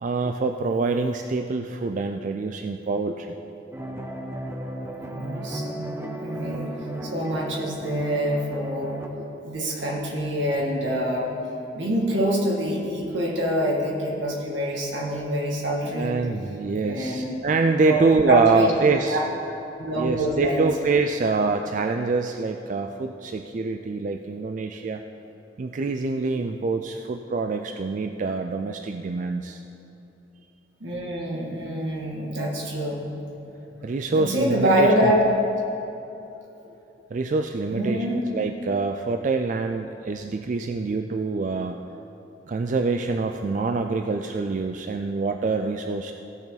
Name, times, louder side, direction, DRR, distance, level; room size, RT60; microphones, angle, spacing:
voice 1, 0.0-3.3 15.9-19.2 20.0-25.0 25.6-29.6 33.8-35.1 37.1-41.8 42.5-46.1, right 3 dB, 40° right, 5 dB, 0.3 m, -25 dB
sound 1, 3.7-9.1, right 1 dB, 15° right, 0.7 m, -35 dB
voice 2, 5.1-6.8 7.0-9.1 9.4-11.3 11.8-16.2 16.8-17.3 17.8-18.7 19.1-19.2 19.8-20.7 30.8-33.0 34.1-35.2 37.7-38.3, equal, 80° right, -2 dB, 2.1 m, -25 dB
16.5 x 6.8 x 4.0 m, 2.9 s
head